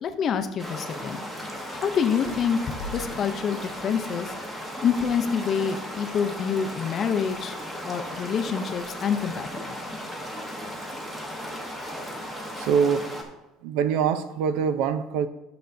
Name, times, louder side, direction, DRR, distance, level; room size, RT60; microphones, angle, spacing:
voice 1, 0.0-1.2 1.7-4.3 4.8-7.6 7.8-9.7, left 7 dB, 30° left, 7 dB, 0.5 m, -27 dB
sound 1, 0.6-13.2, equal, 10° right, 0.9 m, -36 dB
sound 2, 2.1-4.3, left 2 dB, 80° left, 0.8 m, -42 dB
voice 2, 12.6-13.1 13.6-15.3, right 7 dB, 70° right, 12 dB, 0.4 m, -24 dB
11.5 x 6.7 x 2.6 m, 0.96 s
cardioid pair, 170°, 0 cm